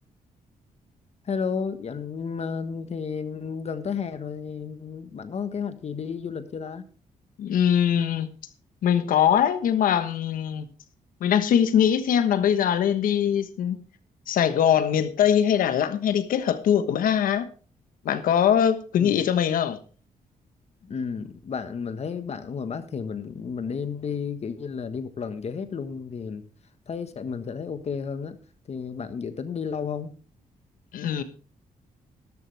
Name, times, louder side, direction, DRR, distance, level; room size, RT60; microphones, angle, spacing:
voice 1, 1.2-6.8 19.0-19.2 20.8-26.4 26.9-28.4 28.7-30.1, left 6 dB, 50° left, 1.4 m, -32 dB
voice 2, 7.4-8.3 8.8-10.7 11.2-13.8 14.3-17.5 18.0-19.8 30.9-31.2, left 9 dB, 85° left, 1.3 m, -22 dB
13.5 x 12.0 x 3.5 m
cardioid pair, 95°, 14 cm